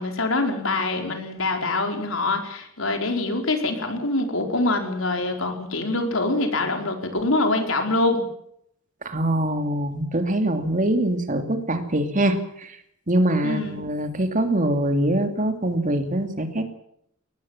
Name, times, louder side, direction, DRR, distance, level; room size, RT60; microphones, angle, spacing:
voice 1, 0.0-8.2 13.4-13.8, left 2 dB, 75° left, 4 dB, 4.8 m, -24 dB
voice 2, 9.0-12.8 13.1-16.6, right 1 dB, 40° right, 7 dB, 2.7 m, -23 dB
22.5 x 18.5 x 7.4 m, 0.70 s
head